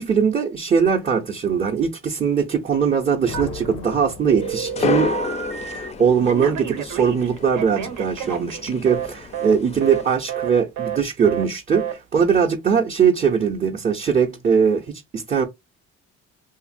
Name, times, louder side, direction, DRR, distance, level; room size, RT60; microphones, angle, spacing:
voice 1, 0.0-5.2 5.7-15.5, right 6 dB, 25° right, 0.5 m, -21 dB
sound 1, 3.2-5.2, left 6 dB, 85° left, 0.5 m, -38 dB
Telephone, 3.3-3.9 4.3-5.9 6.3-9.1 9.3-9.6 9.8-10.0 10.3-10.5 10.8-11.0 11.2-11.5 11.7-11.9, right 8 dB, 85° right, 0.7 m, -30 dB
sound 2, 4.4-10.1, left 4 dB, 25° left, 0.4 m, -30 dB
2.8 x 2.5 x 2.5 m
cardioid pair, 90°, 30 cm